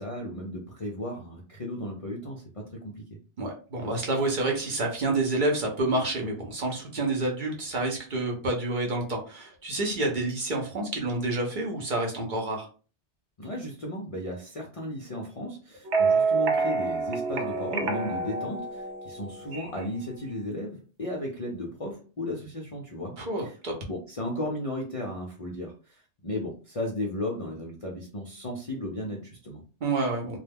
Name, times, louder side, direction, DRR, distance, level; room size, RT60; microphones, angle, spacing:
voice 1, 0.0-3.2 13.4-23.6 23.9-29.6, left 1 dB, 45° left, -2 dB, 0.4 m, -35 dB
voice 2, 3.4-12.7 23.2-23.8 29.8-30.4, right 2 dB, 50° right, 0 dB, 0.7 m, -28 dB
sound 1, 15.9-19.9, right 4 dB, 80° right, 0.9 m, -27 dB
2.3 x 2.1 x 3.3 m, 0.37 s
omnidirectional pair, 1.2 m